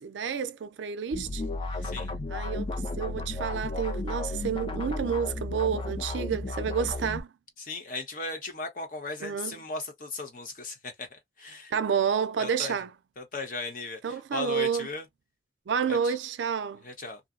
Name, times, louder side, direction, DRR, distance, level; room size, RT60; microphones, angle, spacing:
voice 1, 0.0-1.5 2.3-7.3 9.2-9.6 11.7-12.9 14.0-14.9 15.7-16.8, right 7 dB, 80° right, 0.4 m, -30 dB
sound 1, 1.1-7.2, left 2 dB, 30° left, 0.4 m, -33 dB
voice 2, 7.6-11.7 12.4-12.8 13.2-15.0 15.9-16.1 16.8-17.2, left 3 dB, 50° left, 0.8 m, -37 dB
2.6 x 2.0 x 2.4 m
head